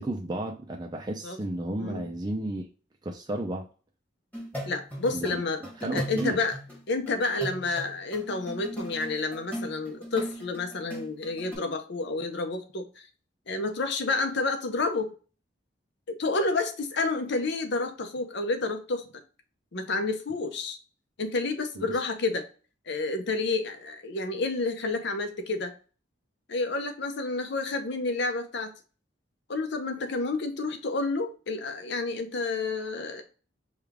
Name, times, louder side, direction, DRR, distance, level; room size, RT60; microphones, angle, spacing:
voice 1, 0.0-2.7 3.0-3.7 5.1-5.4 5.8-6.4 21.8-22.0, right 1 dB, 20° right, 0.5 m, -33 dB
voice 2, 1.8-2.1 4.6-5.6 5.9-6.5 6.9-13.1 13.5-15.1 16.1-19.1 19.7-20.8 21.2-22.4 22.9-25.7 26.5-28.7 29.5-33.2, left 3 dB, 65° left, 0.7 m, -30 dB
sound 1, 4.3-11.6, equal, 10° left, 1.5 m, -38 dB
5.0 x 2.4 x 3.5 m
head